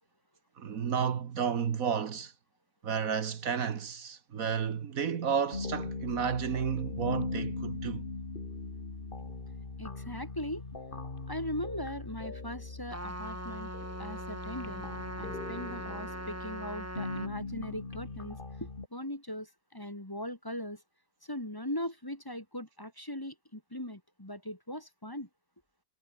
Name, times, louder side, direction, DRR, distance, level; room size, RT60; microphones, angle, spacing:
voice 1, 0.6-2.3 2.8-8.1, right 7 dB, 65° right, 1.6 m, -32 dB
sound 1, 5.5-18.9, left 3 dB, 35° left, 2.4 m, -40 dB
voice 2, 9.8-10.7 11.3-13.7 14.0-14.9 15.2-20.8 21.2-25.3, left 1 dB, 15° left, 2.1 m, -39 dB
Trumpet, 12.9-17.3, right 1 dB, 10° right, 1.8 m, -41 dB
omnidirectional pair, 1.6 m